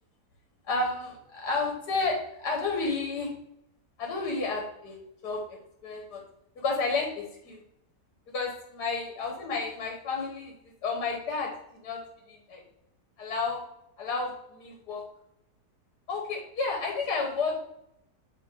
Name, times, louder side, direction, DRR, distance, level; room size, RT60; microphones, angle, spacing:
voice 1, 0.6-3.3 4.0-5.0 5.2-6.2 6.6-7.6 8.3-10.5 10.8-11.5 11.8-12.0 12.3-12.6 13.2-13.6 14.0-15.0 16.1-17.7, left 3 dB, 80° left, 1 dB, 1.6 m, -31 dB
8.8 x 3.0 x 3.6 m, 0.78 s
omnidirectional pair, 1.7 m